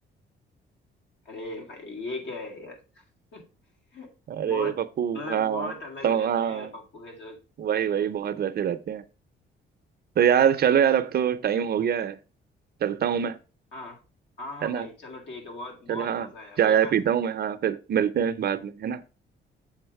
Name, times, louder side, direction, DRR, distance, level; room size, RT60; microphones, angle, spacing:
voice 1, 1.3-3.0 3.3-3.5 3.9-4.1 4.4-4.8 5.1-7.4 13.7-14.0 14.4-17.3, left 2 dB, 65° left, 2.2 m, -39 dB
voice 2, 4.3-5.7 6.0-6.7 7.6-9.0 10.2-12.2 12.8-13.4 14.6-14.9 15.9-16.3 16.6-19.0, right 8 dB, 55° right, 0.6 m, -24 dB
7.1 x 3.8 x 4.7 m
cardioid pair, 90°, 20 cm